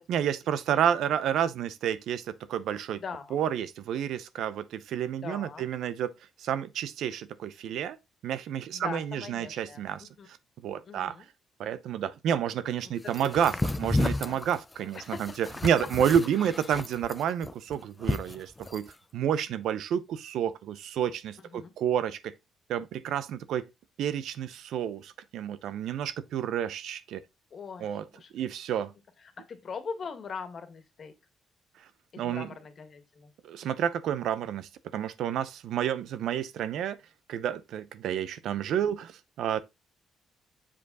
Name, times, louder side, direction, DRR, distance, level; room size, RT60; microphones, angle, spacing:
voice 1, 0.1-3.0 3.3-6.1 6.4-8.0 8.2-10.1 10.6-11.1 11.6-22.3 22.7-23.7 24.0-27.2 27.8-28.0 28.3-28.9 32.2-32.5 33.4-37.0 37.3-39.6, right 9 dB, 80° right, 0.7 m, -30 dB
voice 2, 3.0-3.4 5.2-5.7 8.7-10.3 10.8-11.3 13.2-13.6 14.2-14.4 14.9-15.3 21.4-21.7 27.5-28.3 29.2-31.1 32.1-33.3, left 5 dB, 50° left, 1.8 m, -41 dB
sound 1, 13.1-18.9, left 2 dB, 15° left, 0.6 m, -32 dB
7.2 x 5.0 x 4.1 m
cardioid pair, 90°, 0 cm